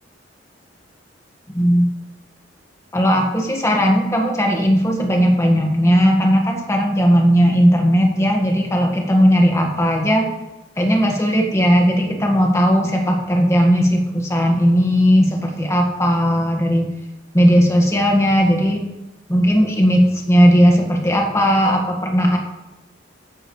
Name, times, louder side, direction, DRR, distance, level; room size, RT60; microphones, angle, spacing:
voice 1, 1.5-1.9 2.9-10.3 10.8-16.9 17.3-18.8 19.3-22.4, equal, 15° left, 1 dB, 1.6 m, -16 dB
14.0 x 10.0 x 3.3 m, 1.0 s
head